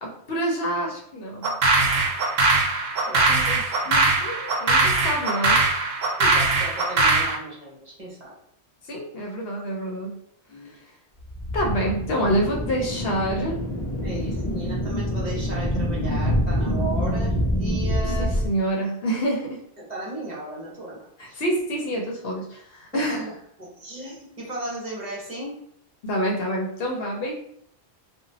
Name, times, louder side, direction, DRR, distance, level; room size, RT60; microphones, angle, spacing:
voice 1, 0.0-1.5 3.3-5.6 8.8-10.2 10.6-10.9 11.5-13.6 18.0-19.6 21.2-23.3 26.0-27.3, right 1 dB, 65° left, 0 dB, 0.8 m, -27 dB
sound 1, 1.4-7.4, right 3 dB, 70° right, 0.8 m, -21 dB
voice 2, 6.2-8.3 10.5-10.7 14.0-18.4 19.8-21.4 22.9-23.2 23.6-25.6, right 1 dB, 40° right, -5 dB, 1.0 m, -35 dB
sound 2, 11.2-18.5, equal, 40° left, 0.5 m, -26 dB
2.9 x 2.3 x 2.7 m, 0.72 s
omnidirectional pair, 1.1 m